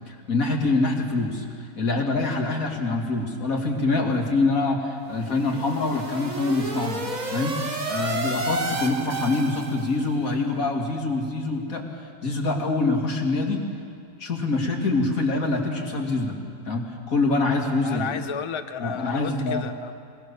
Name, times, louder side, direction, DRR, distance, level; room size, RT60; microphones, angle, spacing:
voice 1, 0.1-1.4 1.8-7.0 7.3-11.9 12.2-13.7 14.2-16.4 16.7-18.1 18.8-19.7, left 3 dB, 75° left, 1 dB, 2.6 m, -25 dB
sound 1, 5.1-10.1, right 2 dB, 30° right, 1.4 m, -31 dB
voice 2, 17.8-19.9, left 6 dB, 30° left, 8 dB, 0.6 m, -32 dB
21.5 x 19.5 x 6.8 m, 2.3 s
omnidirectional pair, 1.5 m